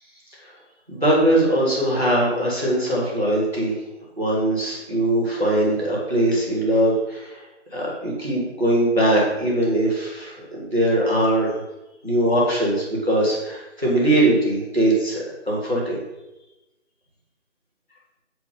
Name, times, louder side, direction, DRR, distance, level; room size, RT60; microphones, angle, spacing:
voice 1, 0.9-3.8 4.2-7.4 7.7-11.5 12.0-16.0, right 1 dB, ahead, -22 dB, 0.9 m, -21 dB
7.8 x 5.7 x 5.5 m, 0.99 s
figure-of-eight pair, 155°, 37 cm